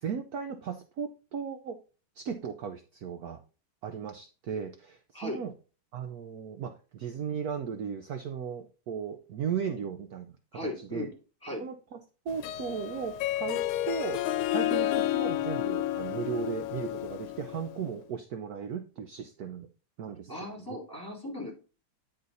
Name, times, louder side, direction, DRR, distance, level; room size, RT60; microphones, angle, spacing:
voice 1, 0.0-1.8 2.2-3.4 3.8-5.5 5.9-10.3 10.6-11.1 11.6-12.0 12.2-14.2 14.5-19.7 20.0-20.3 20.6-20.8, right 7 dB, 70° right, 7 dB, 0.9 m, -36 dB
voice 2, 10.5-11.1 11.4-11.6 20.3-21.5, left 1 dB, 10° left, -1 dB, 2.8 m, -37 dB
Harp, 12.3-17.8, left 13 dB, 85° left, 1.4 m, -31 dB
9.6 x 4.0 x 4.0 m, 0.35 s
omnidirectional pair, 2.3 m